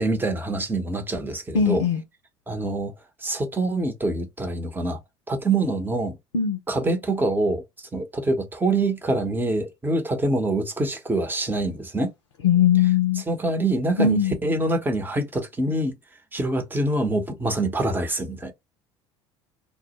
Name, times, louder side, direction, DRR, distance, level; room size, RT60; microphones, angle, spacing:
voice 1, 0.0-1.8 2.5-2.9 3.2-5.0 5.3-6.2 6.7-7.6 7.9-12.1 13.3-16.0 16.3-18.5, right 2 dB, 15° right, 0.7 m, -25 dB
voice 2, 1.5-2.0 6.3-6.6 12.4-13.2 14.0-14.3, left 7 dB, 80° left, 0.5 m, -20 dB
2.1 x 2.1 x 2.8 m
figure-of-eight pair, 65°, 15 cm